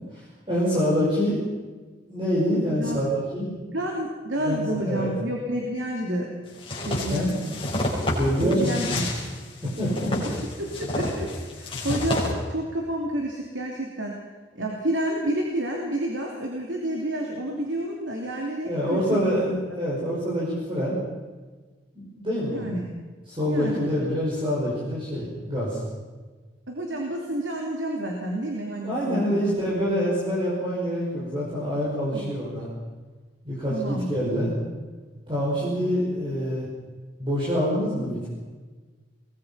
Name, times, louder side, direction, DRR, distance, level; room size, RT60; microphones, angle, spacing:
voice 1, 0.1-1.4 2.1-3.5 4.4-5.1 7.1-7.4 8.1-9.0 9.8-10.2 18.6-19.5 19.7-21.0 21.9-22.7 23.3-25.8 28.8-32.7 33.4-34.5 35.3-36.7 37.2-38.3, equal, 30° right, -7 dB, 5.6 m, -26 dB
voice 2, 3.7-6.3 6.8-7.5 8.4-9.1 10.6-14.2 14.5-19.6 22.5-22.9 23.5-24.1 26.7-29.5 32.1-32.3 33.7-34.1, right 1 dB, 90° right, 0 dB, 3.0 m, -29 dB
sound 1, 6.6-12.3, left 1 dB, 30° left, 5.8 m, -29 dB
23.0 x 20.0 x 5.8 m, 1.4 s
head